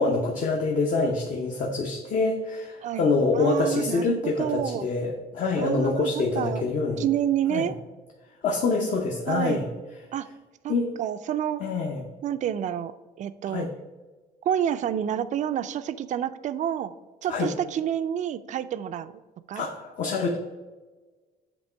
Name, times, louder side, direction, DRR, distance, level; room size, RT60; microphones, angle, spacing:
voice 1, 0.0-7.1 7.5-7.7 8.4-9.7 10.7-10.9 11.6-12.0 13.5-13.7 17.3-17.5 19.5-20.4, left 3 dB, 50° left, 1 dB, 0.8 m, -26 dB
voice 2, 3.3-4.0 4.4-4.9 5.6-6.6 7.0-7.7 9.3-9.6 10.1-10.3 10.6-11.6 12.2-13.7 14.4-16.9 17.2-19.2 19.5-19.7, right 10 dB, 45° right, 13 dB, 0.4 m, -29 dB
8.2 x 3.0 x 4.4 m, 1.3 s
cardioid pair, 110°, 17 cm